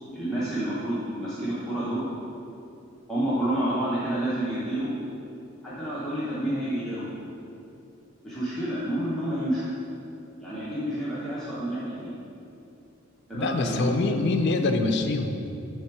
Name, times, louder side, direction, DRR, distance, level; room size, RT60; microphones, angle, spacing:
voice 1, 0.1-2.1 3.1-4.9 5.6-7.1 8.2-9.6 10.4-12.1 13.3-13.9, right 1 dB, 5° left, -11 dB, 0.8 m, -29 dB
voice 2, 13.3-15.5, left 3 dB, 55° left, 6 dB, 0.4 m, -25 dB
6.3 x 3.5 x 4.5 m, 2.7 s
head